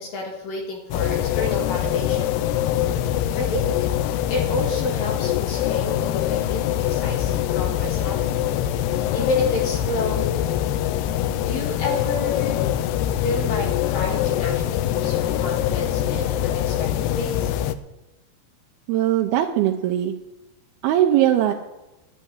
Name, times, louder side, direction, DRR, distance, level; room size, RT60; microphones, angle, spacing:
voice 1, 0.0-2.4 3.1-3.9 4.3-8.5 8.9-10.5 11.5-12.6 13.2-17.5, left 2 dB, 60° left, 0 dB, 3.4 m, -30 dB
sound 1, 0.9-17.8, left 11 dB, 80° left, 2.6 m, -24 dB
voice 2, 18.9-20.1 20.8-21.5, right 12 dB, 75° right, 2 dB, 2.5 m, -20 dB
11.0 x 8.3 x 9.7 m, 1.0 s
omnidirectional pair, 4.8 m